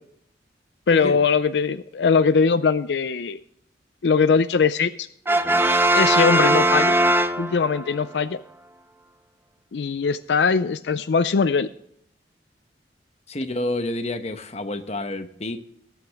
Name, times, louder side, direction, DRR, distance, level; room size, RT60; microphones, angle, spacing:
voice 1, 0.9-3.4 4.0-5.1 5.9-7.0 7.4-8.4 9.7-11.7, left 5 dB, 75° left, 14 dB, 0.4 m, -21 dB
Brass instrument, 5.3-7.9, right 1 dB, 10° right, 0.5 m, -19 dB
voice 2, 13.3-15.6, left 1 dB, 35° left, 8 dB, 1.0 m, -29 dB
19.0 x 8.1 x 3.5 m, 0.69 s
head